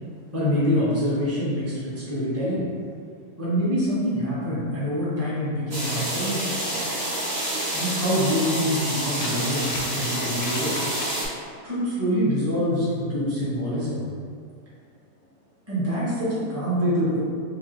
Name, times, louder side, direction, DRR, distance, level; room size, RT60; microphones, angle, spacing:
voice 1, 0.3-2.6 3.4-6.5 7.7-10.7 11.6-14.0 15.7-17.2, equal, 10° right, -10 dB, 0.8 m, -25 dB
sound 1, 5.7-11.3, right 1 dB, 45° right, 0.9 m, -28 dB
sound 2, 9.0-9.9 10.2-11.2, left 4 dB, 75° left, 1.1 m, -37 dB
4.9 x 2.2 x 3.1 m, 2.2 s
omnidirectional pair, 1.9 m